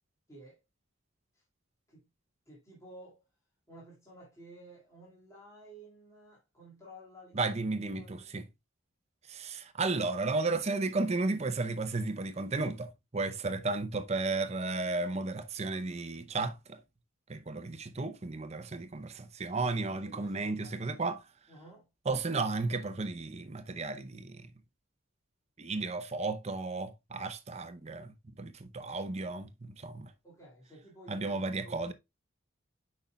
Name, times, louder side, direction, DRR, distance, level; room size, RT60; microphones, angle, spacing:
voice 1, 0.3-0.6 1.3-1.4 1.9-2.1 2.5-3.2 3.7-7.6 7.9-8.5 19.5-20.8 21.5-21.9 30.2-31.9, right 1 dB, 15° left, 2.0 m, -53 dB
voice 2, 7.3-8.4 9.3-16.8 17.3-21.2 22.1-24.5 25.6-30.1 31.1-31.9, right 3 dB, 30° right, 0.6 m, -34 dB
8.2 x 5.4 x 2.3 m
head